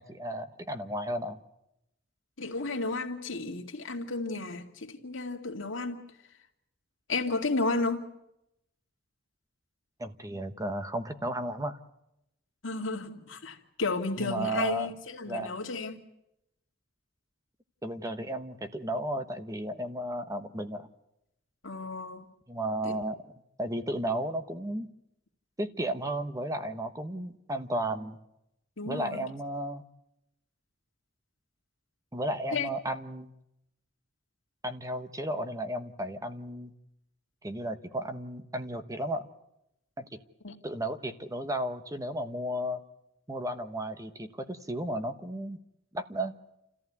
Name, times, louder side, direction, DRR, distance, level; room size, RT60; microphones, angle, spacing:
voice 1, 0.0-1.4 10.0-11.8 14.2-14.9 15.3-15.5 17.8-20.9 22.5-23.3 23.6-24.9 25.6-28.2 28.8-29.8 32.1-33.3 34.6-36.7 37.4-39.3 40.0-40.2 40.6-42.8 43.3-45.6 45.9-46.4, right 1 dB, 15° right, 1.1 m, -34 dB
voice 2, 2.4-6.0 7.1-8.0 12.6-16.0 21.6-22.3 22.8-23.0 28.8-29.3 32.5-32.7 40.4-40.6, left 3 dB, 70° left, 2.3 m, -33 dB
29.0 x 14.5 x 9.5 m
head